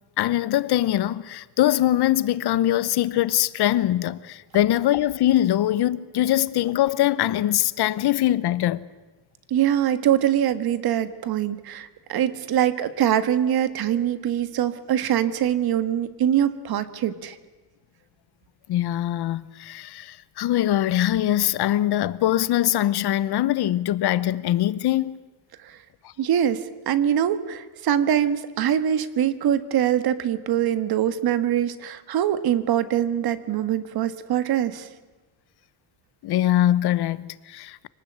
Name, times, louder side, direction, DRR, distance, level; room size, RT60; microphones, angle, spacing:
voice 1, 0.2-8.9 18.7-25.2 36.2-37.9, left 13 dB, 65° left, 1.0 m, -22 dB
voice 2, 9.5-17.4 25.6-25.8 26.2-34.9, right 10 dB, 60° right, 1.6 m, -23 dB
26.0 x 19.0 x 8.8 m
cardioid pair, 145°, 41 cm